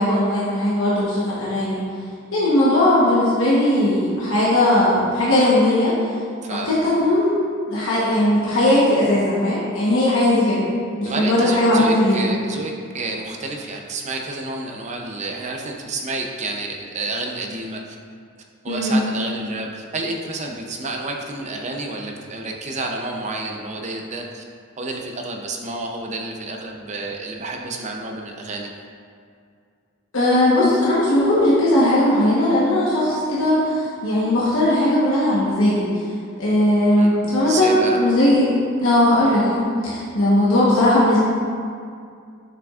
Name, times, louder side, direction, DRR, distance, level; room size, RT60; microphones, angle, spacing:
voice 1, 0.0-1.8 2.3-5.9 6.5-7.3 7.7-10.6 11.0-12.2 18.7-19.0 30.1-35.9 36.4-38.5 38.8-41.2, left 1 dB, 65° left, -8 dB, 1.1 m, -18 dB
voice 2, 11.0-18.0 18.6-24.4 24.8-28.7 37.0-37.2 37.4-38.0, right 2 dB, 35° right, 1 dB, 0.6 m, -29 dB
6.9 x 6.0 x 2.4 m, 2.3 s
head